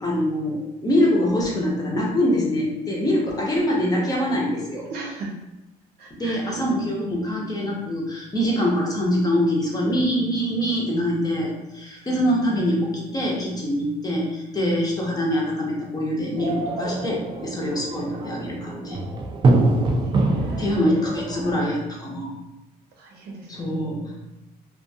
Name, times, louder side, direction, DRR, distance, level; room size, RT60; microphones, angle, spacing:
voice 1, 0.0-4.9 6.1-19.0 20.6-22.3 23.5-24.2, equal, 20° left, -2 dB, 0.7 m, -24 dB
voice 2, 3.5-3.8 4.9-5.3 6.0-6.7 20.0-20.7 23.0-23.5, right 3 dB, 70° right, -1 dB, 0.7 m, -37 dB
sound 1, 16.4-21.6, right 2 dB, 30° right, 0.3 m, -24 dB
2.4 x 2.2 x 2.6 m, 0.99 s
cardioid pair, 110°, 17 cm